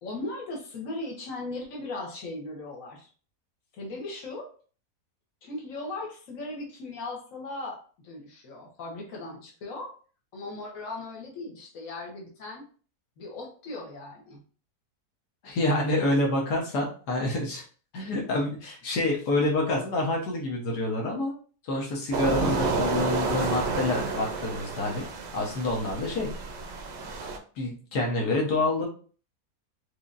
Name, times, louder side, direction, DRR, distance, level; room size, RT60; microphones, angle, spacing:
voice 1, 0.0-3.1 3.8-4.5 5.4-9.9 10.3-12.6 13.2-14.4 19.6-19.8, left 2 dB, 60° left, -1 dB, 1.5 m, -38 dB
voice 2, 15.4-17.6 17.9-21.3 21.6-25.0 25.3-26.3 27.6-28.8, left 2 dB, 85° left, -1 dB, 1.5 m, -27 dB
sound 1, 22.1-27.4, right 4 dB, 60° right, 0.7 m, -30 dB
4.8 x 2.7 x 2.4 m, 0.40 s
omnidirectional pair, 1.7 m